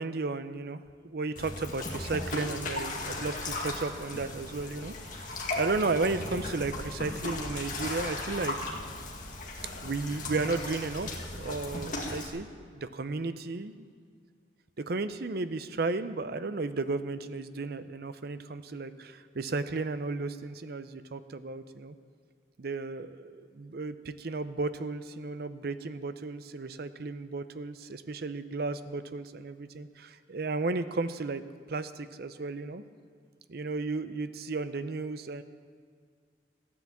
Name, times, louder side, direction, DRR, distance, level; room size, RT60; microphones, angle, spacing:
voice 1, 0.0-4.9 5.2-8.8 9.8-12.5 12.7-13.8 14.8-22.0 22.6-31.4 31.7-32.8 33.5-35.4, right 3 dB, 60° right, 11 dB, 0.6 m, -34 dB
sound 1, 1.4-12.3, left 2 dB, 50° left, 2.1 m, -36 dB
14.0 x 9.7 x 7.2 m, 2.1 s
head